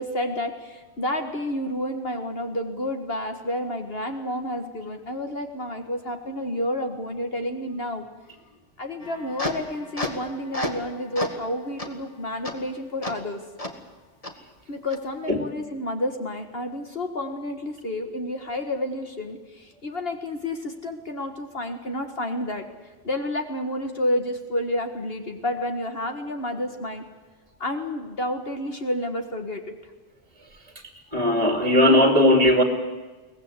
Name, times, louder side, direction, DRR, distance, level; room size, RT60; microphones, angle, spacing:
voice 1, 0.0-8.0 8.8-13.4 14.7-22.6 23.0-27.0 27.6-29.7, left 1 dB, 55° left, 5 dB, 1.9 m, -30 dB
sound 1, 9.0-10.9 11.2-11.4 11.8-11.9 12.4-12.5 13.0-13.1 13.6-13.7 14.2-14.3 14.9-15.0, left 1 dB, 30° left, 2.1 m, -31 dB
voice 2, 31.1-32.6, left 1 dB, 30° right, 4 dB, 2.6 m, -18 dB
23.0 x 18.5 x 8.2 m, 1.3 s
omnidirectional pair, 1.2 m